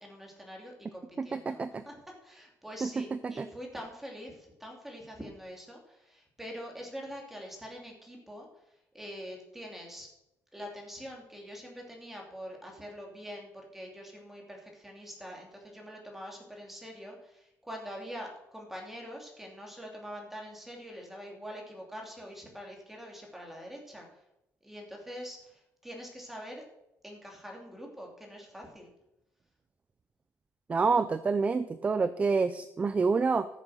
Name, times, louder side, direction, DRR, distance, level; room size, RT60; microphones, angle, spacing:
voice 1, 0.0-2.0 2.2-10.1 10.5-24.2 24.6-26.6 27.0-28.9, equal, 5° right, 0 dB, 2.9 m, -44 dB
voice 2, 1.2-1.8 2.8-3.5 30.7-33.5, right 4 dB, 20° right, 13 dB, 0.5 m, -28 dB
14.0 x 7.4 x 6.5 m, 0.86 s
cardioid pair, 150°, 6 cm